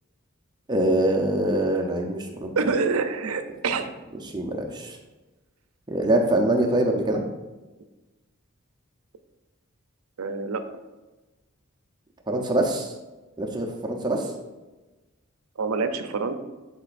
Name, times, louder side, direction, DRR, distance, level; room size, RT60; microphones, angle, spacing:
voice 1, 0.7-2.5 4.2-5.0 5.9-7.2 12.3-12.9 13.4-14.3, right 1 dB, 20° right, 1 dB, 0.7 m, -24 dB
voice 2, 2.6-3.9 10.2-10.6 15.6-16.4, right 4 dB, 80° right, 9 dB, 0.6 m, -26 dB
10.0 x 3.9 x 2.5 m, 1.1 s
head